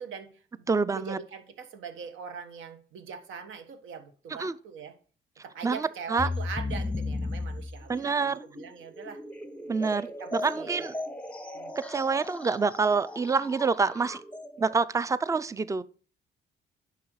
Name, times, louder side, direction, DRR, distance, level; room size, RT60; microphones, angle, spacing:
voice 1, 0.0-4.9 5.4-9.2 10.2-10.9 11.5-11.8, right 6 dB, 80° right, 1.4 m, -42 dB
voice 2, 0.7-1.2 4.4-4.5 5.6-6.3 7.9-8.4 9.7-10.9 11.8-14.2 14.6-15.8, right 4 dB, 15° right, 0.5 m, -27 dB
sound 1, 6.2-14.7, left 2 dB, 5° left, 0.8 m, -36 dB
9.5 x 5.9 x 4.8 m
cardioid pair, 90°, 20 cm